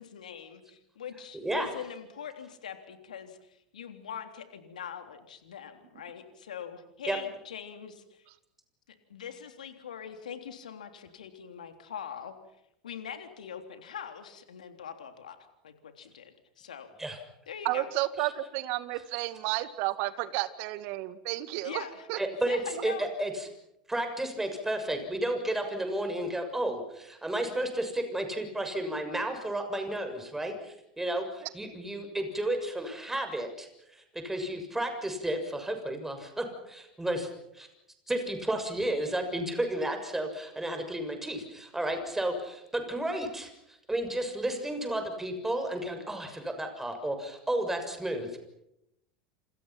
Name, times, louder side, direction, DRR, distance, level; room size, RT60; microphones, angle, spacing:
voice 1, 0.0-8.2 9.1-12.3 12.8-15.4 15.6-16.9 17.5-17.9 21.6-22.1 22.5-23.1, left 8 dB, 80° left, 7 dB, 3.4 m, -42 dB
voice 2, 17.6-21.8 22.1-22.2 22.7-22.8 31.4-31.5, right 16 dB, 55° right, 13 dB, 2.0 m, -32 dB
voice 3, 22.2-23.5 23.9-33.7 34.2-37.3 37.6-37.7 38.1-43.5 43.9-48.3, right 1 dB, 10° right, 6 dB, 6.8 m, -32 dB
28.5 x 28.0 x 6.0 m, 0.84 s
hypercardioid pair, 80°, 4 cm